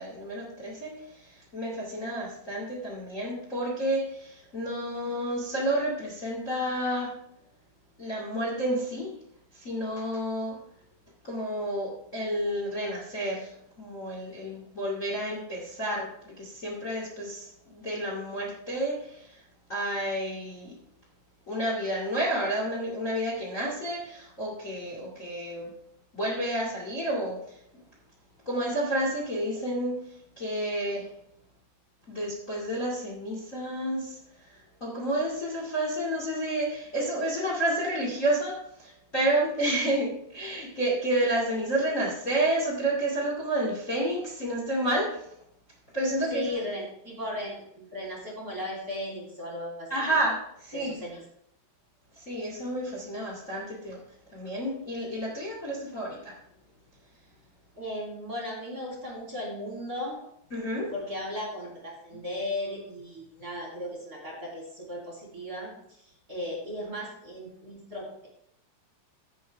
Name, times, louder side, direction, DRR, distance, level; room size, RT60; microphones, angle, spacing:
voice 1, 0.0-7.1 8.0-9.1 9.5-10.6 11.2-19.4 19.7-20.7 21.5-25.7 26.1-27.8 28.4-31.1 32.1-45.3 45.9-46.6 49.9-51.0 52.1-54.0 54.3-56.3 60.5-60.9, right 1 dB, 60° left, -4 dB, 0.8 m, -30 dB
voice 2, 46.3-49.9 50.7-51.2 57.8-60.2 60.9-68.3, left 1 dB, 25° right, -4 dB, 2.5 m, -36 dB
16.0 x 6.4 x 3.4 m, 0.73 s
omnidirectional pair, 5.7 m